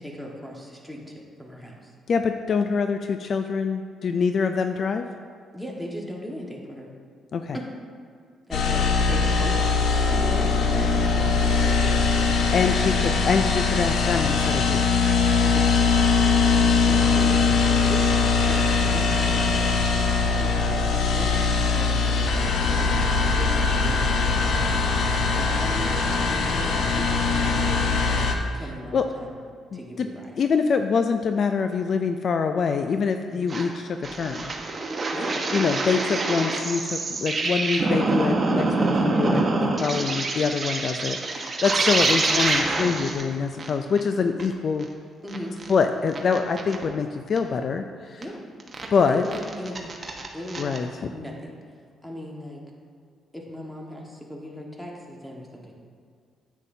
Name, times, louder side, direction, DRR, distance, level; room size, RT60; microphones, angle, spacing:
voice 1, 0.0-1.9 5.5-6.9 7.5-7.7 8.5-9.6 10.1-12.4 12.6-13.1 15.4-15.9 16.7-28.2 28.5-29.3 29.7-30.3 33.3-33.5 35.1-35.4 39.9-40.1 45.2-45.5 48.2-48.4 49.0-49.9 50.3-51.5 52.0-52.6 53.3-55.8, equal, 5° left, -1 dB, 1.5 m, -38 dB
voice 2, 2.1-5.1 7.3-7.6 12.5-14.9 28.5-28.6 28.9-29.1 29.7-30.1 30.4-34.5 35.5-44.9 45.7-48.2 48.9-49.2 50.6-50.9, left 5 dB, 55° left, 7 dB, 0.4 m, -25 dB
sound 1, 8.5-28.3, left 4 dB, 70° left, 0.8 m, -21 dB
sound 2, 33.5-33.7 34.0-43.2 43.6-43.7 44.0-44.1 44.4-44.5 44.8-44.9 45.3-45.7 46.1-46.8 47.4-47.5 48.2-48.3 48.6-48.9 49.3-50.8, right 3 dB, 35° right, 1.1 m, -25 dB
9.7 x 8.1 x 2.7 m, 2.1 s
cardioid pair, 90°, 0 cm